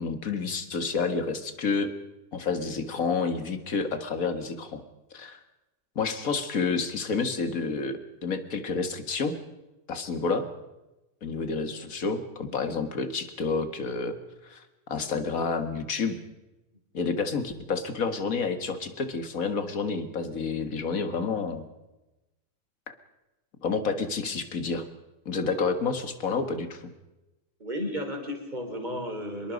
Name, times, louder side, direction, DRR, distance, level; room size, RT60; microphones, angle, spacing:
voice 1, 0.0-1.9 2.3-4.8 5.1-5.4 6.0-9.4 9.9-10.5 11.2-14.2 14.4-16.2 16.9-21.7 23.6-24.8 25.3-26.9, left 4 dB, 55° left, 9 dB, 2.1 m, -29 dB
voice 2, 27.6-29.5, equal, 25° right, 3 dB, 4.0 m, -33 dB
25.5 x 22.0 x 5.3 m, 1.0 s
omnidirectional pair, 1.8 m